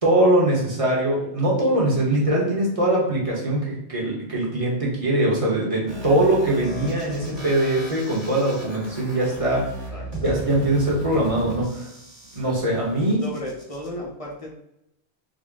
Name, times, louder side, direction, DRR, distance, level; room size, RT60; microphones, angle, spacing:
voice 1, 0.0-11.9 12.3-13.2, right 1 dB, 35° right, -4 dB, 1.0 m, -22 dB
sound 1, 5.9-13.9, right 1 dB, 50° right, 1.5 m, -36 dB
voice 2, 9.9-10.5 13.2-14.5, left 1 dB, 40° left, -2 dB, 0.7 m, -35 dB
3.9 x 2.1 x 3.5 m, 0.84 s
omnidirectional pair, 1.1 m